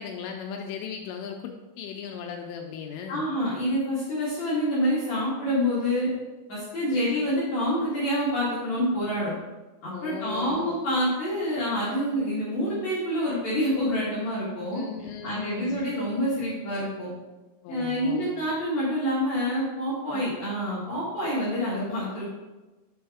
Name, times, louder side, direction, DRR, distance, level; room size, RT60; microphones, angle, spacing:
voice 1, 0.0-3.3 6.9-7.1 9.9-10.7 14.7-15.9 17.6-18.3 20.1-20.4, left 7 dB, 85° left, 2 dB, 2.8 m, -37 dB
voice 2, 3.1-6.1 6.5-9.3 9.8-14.8 15.2-17.1 17.7-22.3, equal, 55° left, -9 dB, 2.3 m, -27 dB
6.8 x 5.4 x 3.4 m, 1.1 s
omnidirectional pair, 4.9 m